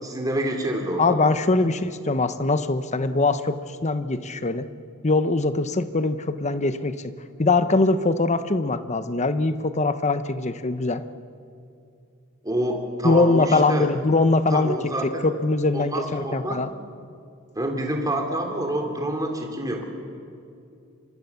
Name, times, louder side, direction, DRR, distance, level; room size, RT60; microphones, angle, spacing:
voice 1, 0.0-1.2 12.4-13.9 14.5-15.2 15.7-16.6 17.5-19.8, right 1 dB, 15° right, 2 dB, 2.9 m, -27 dB
voice 2, 1.0-4.7 5.0-7.1 7.4-11.0 13.0-16.7, left 3 dB, 35° left, 11 dB, 1.0 m, -22 dB
29.0 x 25.0 x 7.1 m, 2.6 s
head